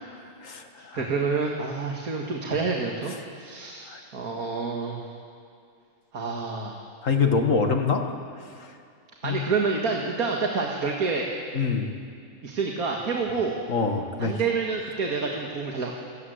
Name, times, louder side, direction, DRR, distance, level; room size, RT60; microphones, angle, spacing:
voice 1, 0.4-1.1 3.9-4.0 7.0-8.1 8.6-8.7 9.2-9.4 11.5-11.9 13.3-13.4 13.7-14.4, left 5 dB, 65° left, 5 dB, 2.1 m, -25 dB
voice 2, 0.9-5.0 6.1-6.8 9.2-11.3 12.4-13.6 14.2-15.9, right 4 dB, 90° right, 0 dB, 2.3 m, -28 dB
28.5 x 17.0 x 8.1 m, 2.3 s
omnidirectional pair, 1.5 m